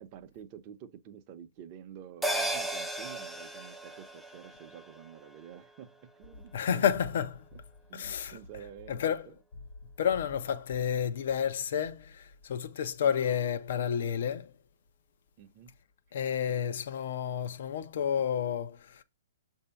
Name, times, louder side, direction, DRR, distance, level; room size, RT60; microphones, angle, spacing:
voice 1, 0.0-6.8 7.5-7.6 7.9-9.3 15.4-15.7, right 9 dB, 35° right, 0.7 m, -49 dB
sound 1, 2.2-6.9 7.3-7.4, right 1 dB, ahead, 0.4 m, -37 dB
voice 2, 6.5-7.4 7.9-8.4 8.9-9.3 10.0-14.5 16.1-19.0, left 8 dB, 60° left, 0.7 m, -30 dB
6.6 x 2.7 x 5.6 m
hypercardioid pair, 150°, 0 cm